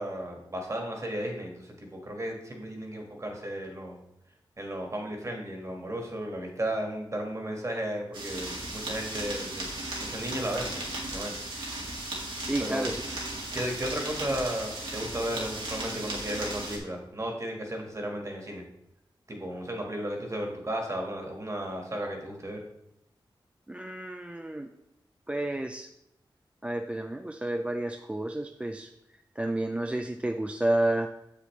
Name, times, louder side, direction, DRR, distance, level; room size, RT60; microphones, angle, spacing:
voice 1, 0.0-4.0 4.6-9.7 10.0-11.3 12.6-12.9 13.5-18.6 19.3-22.6, right 1 dB, 35° right, 2 dB, 1.7 m, -34 dB
sound 1, 8.1-16.8, right 2 dB, 85° right, 2.1 m, -36 dB
voice 2, 12.4-13.0 23.7-24.7 25.3-25.9 26.6-28.9 29.4-31.1, right 1 dB, 15° right, 5 dB, 0.4 m, -30 dB
7.5 x 6.8 x 3.2 m, 0.83 s
wide cardioid pair, 75°, 9 cm